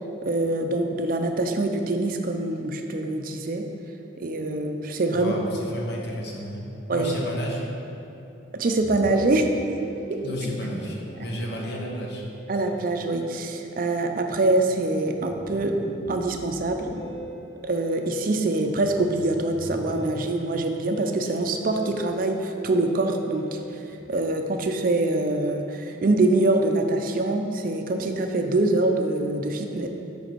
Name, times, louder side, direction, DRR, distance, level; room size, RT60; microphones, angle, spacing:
voice 1, 0.2-3.7 4.2-5.3 6.9-7.1 8.5-9.5 10.1-10.2 12.5-15.8 16.1-16.8 17.6-23.6 24.1-29.9, right 2 dB, 45° right, 5 dB, 0.4 m, -24 dB
voice 2, 5.1-7.7 10.2-12.2, equal, 55° left, -1 dB, 1.0 m, -32 dB
Musical instrument, 8.8-26.4, equal, 20° left, 1.0 m, -40 dB
6.6 x 5.2 x 4.5 m, 2.9 s
head